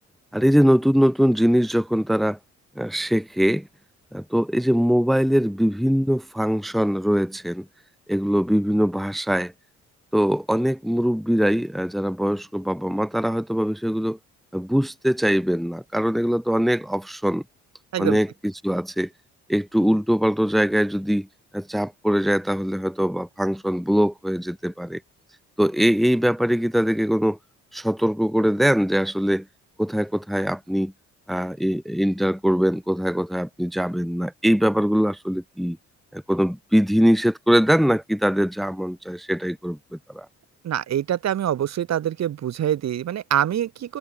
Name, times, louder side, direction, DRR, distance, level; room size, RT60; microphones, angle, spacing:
voice 1, 0.3-2.4 2.8-3.7 4.1-7.6 8.1-9.5 10.1-14.2 14.5-17.4 18.0-18.3 18.6-19.1 19.5-21.3 21.5-25.0 25.6-27.4 27.7-29.4 29.8-30.9 31.3-35.8 36.1-40.3, equal, ahead, 1.0 m, -22 dB
voice 2, 40.6-44.0, right 10 dB, 60° right, 1.6 m, -25 dB
cardioid pair, 90°, 30 cm